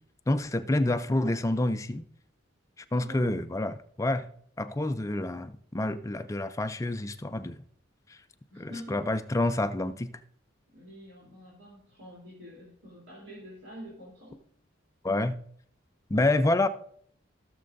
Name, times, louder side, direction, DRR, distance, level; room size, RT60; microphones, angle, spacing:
voice 1, 0.3-2.0 2.9-4.2 4.6-7.6 8.6-10.1 15.0-15.4 16.1-16.7, left 2 dB, 15° left, 0.4 m, -28 dB
voice 2, 2.9-3.4 8.5-9.0 10.7-14.4, equal, 85° right, 3.1 m, -46 dB
15.0 x 6.6 x 2.6 m
head